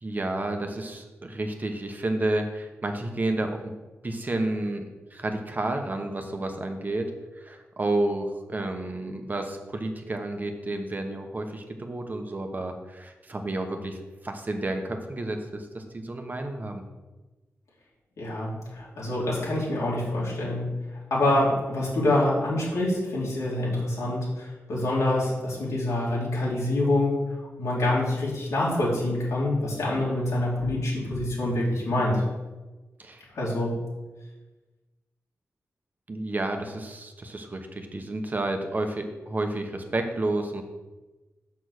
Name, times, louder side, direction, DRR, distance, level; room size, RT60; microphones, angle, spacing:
voice 1, 0.0-3.7 4.0-14.0 14.2-16.8 33.0-33.2 36.1-40.6, right 2 dB, 35° right, 5 dB, 1.0 m, -31 dB
voice 2, 18.2-20.8 21.1-27.2 27.6-32.2 33.3-33.8, left 1 dB, 85° left, -6 dB, 3.1 m, -26 dB
6.3 x 5.8 x 6.4 m, 1.2 s
cardioid pair, 75°, 5 cm